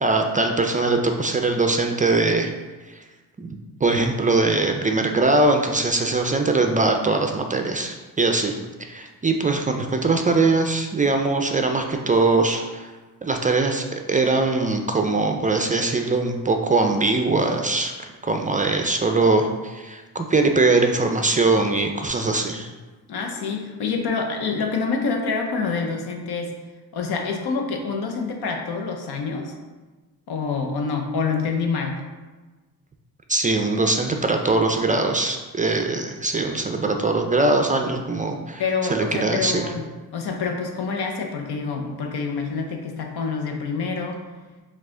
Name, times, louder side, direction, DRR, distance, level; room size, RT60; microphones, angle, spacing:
voice 1, 0.0-2.5 3.4-12.9 13.2-22.7 33.3-38.6 38.9-39.7, right 3 dB, 20° right, 4 dB, 0.3 m, -21 dB
voice 2, 23.1-26.5 26.9-29.5 30.3-32.0 38.6-39.9 40.1-44.2, left 4 dB, 80° left, 2 dB, 0.8 m, -26 dB
4.7 x 2.4 x 3.7 m, 1.3 s
cardioid pair, 70°, 39 cm